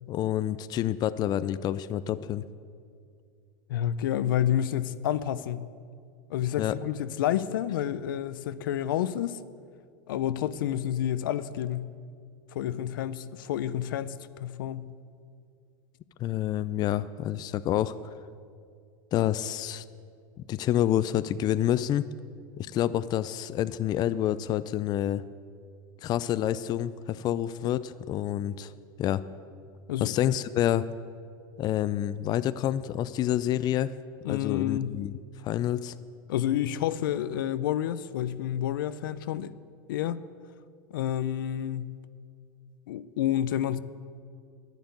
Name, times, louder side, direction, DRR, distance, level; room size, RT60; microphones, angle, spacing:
voice 1, 0.1-2.4 6.6-6.8 16.2-17.9 19.1-19.8 20.5-22.1 22.6-25.2 26.0-28.7 29.0-29.2 30.0-30.9 31.6-33.9 34.3-35.1 35.4-35.9, left 12 dB, 40° left, 14 dB, 0.5 m, -28 dB
voice 2, 3.7-5.7 6.3-9.4 10.1-11.9 12.5-14.9 29.9-30.1 34.2-35.0 36.3-39.5 39.9-40.2 40.9-42.0 42.9-43.8, left 11 dB, 80° left, 14 dB, 0.6 m, -29 dB
10.5 x 10.5 x 9.6 m, 2.3 s
hypercardioid pair, 110°, 11 cm